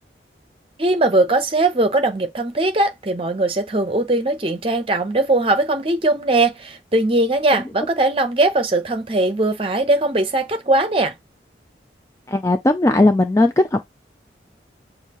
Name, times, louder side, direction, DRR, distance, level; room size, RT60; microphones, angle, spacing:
voice 1, 0.8-11.1, right 2 dB, 30° right, 0.8 m, -20 dB
voice 2, 12.3-13.9, left 2 dB, 15° left, 0.4 m, -17 dB
6.4 x 2.6 x 2.9 m
head